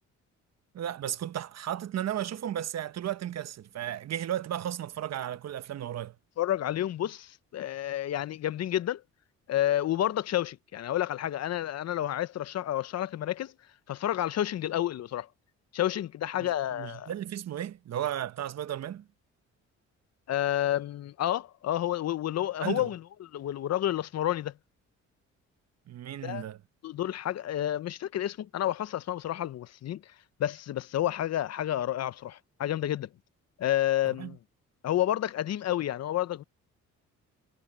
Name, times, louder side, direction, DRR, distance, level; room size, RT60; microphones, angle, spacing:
voice 1, 0.7-6.1 16.4-19.1 22.6-22.9 25.9-26.6 34.0-34.4, right 11 dB, 60° right, 1.1 m, -34 dB
voice 2, 6.4-9.0 9.5-13.5 13.9-15.3 15.7-17.1 20.3-24.5 26.2-26.5 26.8-30.0 30.4-33.1 33.6-34.4 34.8-36.4, left 12 dB, 60° left, 0.7 m, -30 dB
cardioid pair, 90°, 30 cm